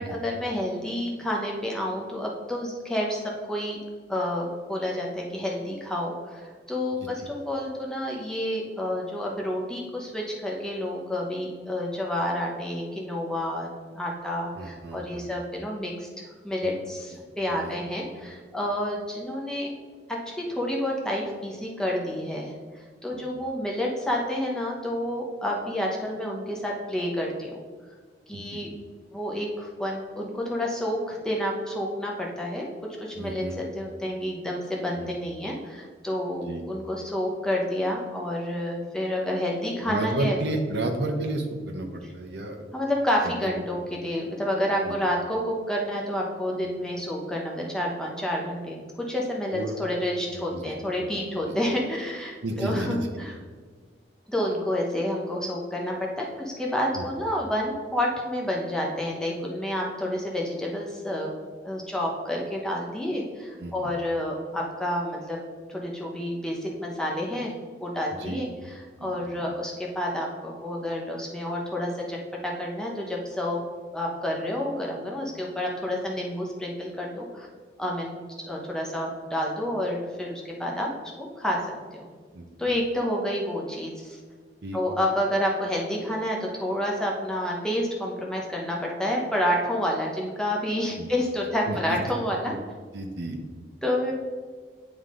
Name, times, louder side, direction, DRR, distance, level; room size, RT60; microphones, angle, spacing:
voice 1, 0.0-3.8 4.1-13.7 14.0-16.1 16.4-19.7 20.1-22.5 23.0-27.6 28.3-28.7 29.1-32.7 33.0-33.4 33.7-40.3 42.7-53.3 54.3-61.3 61.6-65.4 65.7-67.5 67.8-68.5 69.0-73.6 73.9-77.5 77.8-78.2 78.4-80.9 81.2-81.6 81.9-82.1 82.6-84.2 84.7-92.5 93.8-94.1, left 1 dB, 5° left, -2 dB, 0.8 m, -29 dB
voice 2, 14.6-15.4 16.6-16.7 18.2-18.3 23.1-23.3 28.3-28.7 33.2-33.5 35.0-35.1 36.4-36.6 39.8-42.7 43.2-43.6 44.8-44.9 49.5-49.7 50.3-50.7 52.4-53.1 56.9-57.1 63.6-63.7 68.2-68.4 69.0-69.1 82.3-82.7 84.6-84.8 91.0-91.1 91.6-92.0 92.5-92.6 92.9-93.4, right 1 dB, 80° right, 2 dB, 0.7 m, -32 dB
9.4 x 3.7 x 3.7 m, 1.5 s
head